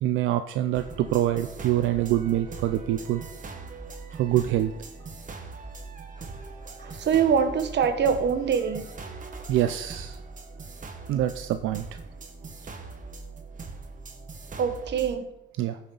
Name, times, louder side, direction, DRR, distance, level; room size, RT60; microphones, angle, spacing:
voice 1, 0.0-3.2 4.1-4.7 9.5-10.2 11.1-12.0 15.6-15.8, right 13 dB, 85° right, 9 dB, 0.5 m, -25 dB
sound 1, 0.7-15.2, right 3 dB, 40° right, 1.5 m, -41 dB
voice 2, 6.9-8.8 14.6-15.3, right 7 dB, 60° right, 9 dB, 1.3 m, -24 dB
15.5 x 7.1 x 3.9 m, 0.88 s
cardioid pair, 90°, 20 cm